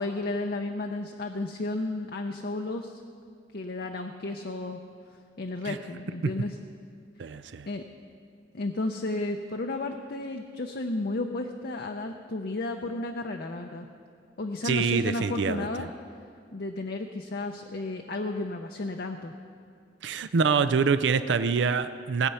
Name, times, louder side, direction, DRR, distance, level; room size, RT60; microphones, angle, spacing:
voice 1, 0.0-3.0 3.5-4.8 5.4-6.5 7.7-7.8 8.5-13.9 14.4-15.9 16.5-19.3, left 2 dB, 55° left, 3 dB, 0.6 m, -33 dB
voice 2, 7.2-7.7 14.6-15.9 20.0-22.3, right 5 dB, 75° right, 12 dB, 0.5 m, -25 dB
19.0 x 8.2 x 5.6 m, 2.2 s
head